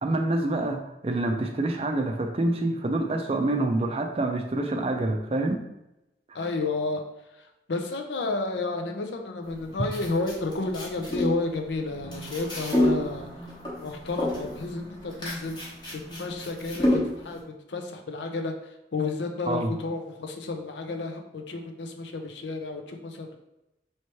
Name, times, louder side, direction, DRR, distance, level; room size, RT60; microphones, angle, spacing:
voice 1, 0.0-5.7 6.3-6.4 19.5-19.7, right 2 dB, 35° right, 5 dB, 0.4 m, -27 dB
voice 2, 6.3-7.0 7.4-13.3 13.8-17.4 17.7-18.5 18.9-23.4, left 3 dB, 85° left, 4 dB, 0.6 m, -31 dB
sound 1, 9.4-17.4, left 1 dB, 25° left, 1.0 m, -30 dB
3.1 x 3.1 x 4.4 m, 0.92 s
head